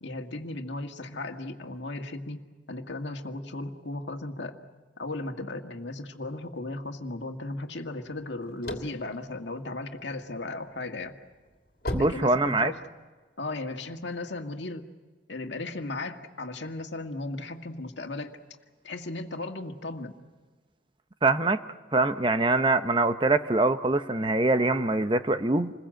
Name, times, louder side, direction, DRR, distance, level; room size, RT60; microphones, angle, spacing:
voice 1, 0.0-4.6 5.0-11.1 12.0-12.8 13.4-14.9 15.3-18.4 18.8-20.2, left 2 dB, 80° left, 5 dB, 1.9 m, -36 dB
sound 1, 8.4-10.3 10.8-13.0, left 1 dB, 50° left, 2.9 m, -36 dB
voice 2, 11.9-12.7 21.2-21.6 21.9-25.7, right 2 dB, 25° right, 10 dB, 0.8 m, -24 dB
28.0 x 21.5 x 7.7 m, 1.3 s
head